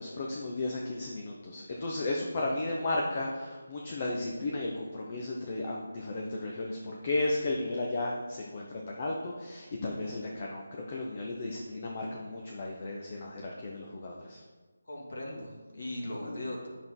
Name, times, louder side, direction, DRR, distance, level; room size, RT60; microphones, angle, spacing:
voice 1, 0.0-14.4, left 2 dB, 35° left, -2 dB, 1.0 m, -34 dB
voice 2, 14.9-16.7, left 1 dB, 65° left, -2 dB, 2.6 m, -38 dB
8.7 x 6.2 x 3.9 m, 1.3 s
figure-of-eight pair, 160°, 0 cm